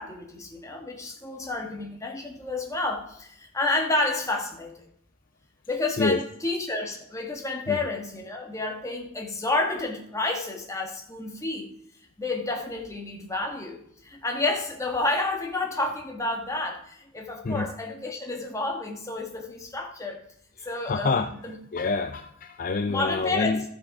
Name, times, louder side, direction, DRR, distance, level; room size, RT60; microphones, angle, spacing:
voice 1, 0.0-4.9 5.7-11.7 12.2-20.2 20.6-21.2 21.4-21.6 22.9-23.6, left 2 dB, 15° left, 2 dB, 1.5 m, -30 dB
voice 2, 20.6-23.6, left 4 dB, 40° left, 8 dB, 0.4 m, -27 dB
13.5 x 6.5 x 4.8 m, 0.71 s
head